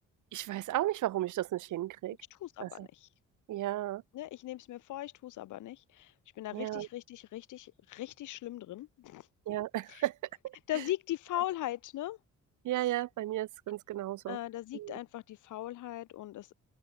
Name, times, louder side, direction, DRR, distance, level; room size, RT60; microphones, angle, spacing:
voice 1, 0.3-2.2 2.6-2.9 3.5-4.0 6.5-6.9 9.5-10.1 12.6-14.4 14.7-14.9, right 14 dB, 80° right, 1.5 m, -34 dB
voice 2, 2.3-3.1 4.1-9.3 9.9-10.0 10.7-12.2 14.3-16.5, left 14 dB, 85° left, 3.8 m, -39 dB
open air
cardioid pair, 90°, 30 cm